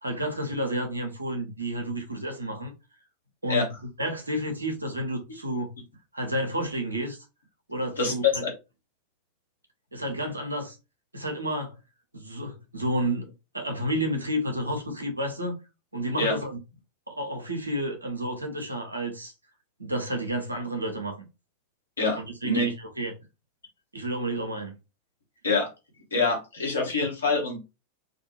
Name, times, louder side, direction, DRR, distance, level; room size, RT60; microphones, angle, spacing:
voice 1, 0.0-2.7 3.4-3.7 4.0-5.7 6.1-7.2 7.7-8.4 9.9-10.8 11.1-11.7 12.1-15.6 15.9-16.6 17.1-19.3 19.8-21.2 22.2-23.1 23.9-24.8, right 1 dB, 80° right, 0.8 m, -30 dB
voice 2, 22.0-22.6 25.4-25.7 26.1-27.6, left 3 dB, 70° left, 1.2 m, -26 dB
2.6 x 2.5 x 2.8 m
figure-of-eight pair, 90°, 0 cm